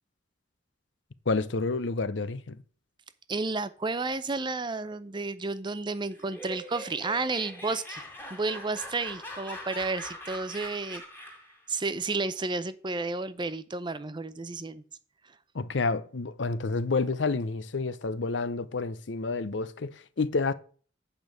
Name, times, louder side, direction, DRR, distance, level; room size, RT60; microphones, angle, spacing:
voice 1, 1.3-2.6 15.5-20.5, left 3 dB, 70° left, 0.7 m, -29 dB
voice 2, 3.3-8.0 8.3-11.0 11.7-14.8, right 3 dB, 25° right, 0.6 m, -32 dB
Laughter, 6.1-11.6, left 1 dB, 10° left, 2.1 m, -42 dB
8.5 x 5.2 x 7.6 m
head